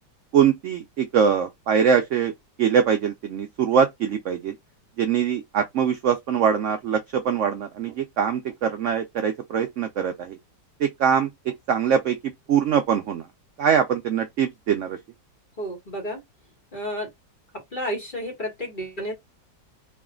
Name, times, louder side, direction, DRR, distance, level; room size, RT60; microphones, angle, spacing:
voice 1, 0.3-2.3 2.6-4.6 5.0-10.4 10.8-12.2 12.5-13.3 13.6-15.0, right 7 dB, 75° right, 0.7 m, -23 dB
voice 2, 15.6-16.2 16.7-17.1 17.7-19.1, equal, 30° left, 1.6 m, -31 dB
3.1 x 2.9 x 3.7 m
omnidirectional pair, 1.8 m